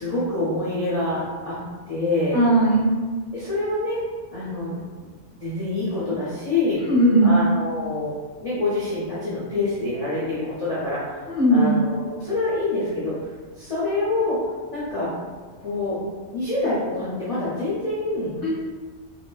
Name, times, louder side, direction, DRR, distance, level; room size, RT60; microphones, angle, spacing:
voice 1, 0.0-1.6 1.9-2.4 3.3-4.0 4.3-4.7 5.4-6.8 7.2-8.1 8.4-11.2 11.5-13.1 13.6-14.4 14.7-15.1 15.6-16.0 16.3-18.3, left 2 dB, 40° left, -9 dB, 0.6 m, -26 dB
voice 2, 2.3-2.9 6.8-7.4 11.3-11.8 18.4-18.5, right 1 dB, 15° right, -7 dB, 0.8 m, -18 dB
3.6 x 2.2 x 2.3 m, 1.5 s
omnidirectional pair, 1.2 m